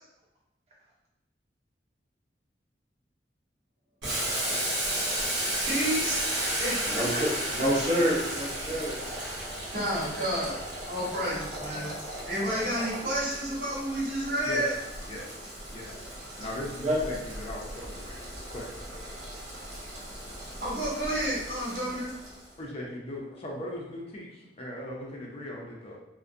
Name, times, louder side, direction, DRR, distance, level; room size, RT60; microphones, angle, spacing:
Boiling, 4.0-22.4, right 1 dB, 85° right, 0.8 m, -34 dB
voice 1, 5.6-6.2 6.6-6.8 7.1-7.2 7.5-7.6 9.7-10.6 10.9-11.9 12.2-14.7 20.6-22.1, equal, 55° right, -8 dB, 1.1 m, -30 dB
voice 2, 6.9-9.0 16.8-17.0, equal, 35° right, -4 dB, 0.6 m, -27 dB
voice 3, 15.7-16.1 16.4-19.0 22.6-26.0, left 1 dB, 35° left, -3 dB, 0.4 m, -39 dB
2.3 x 2.1 x 2.5 m, 0.93 s
head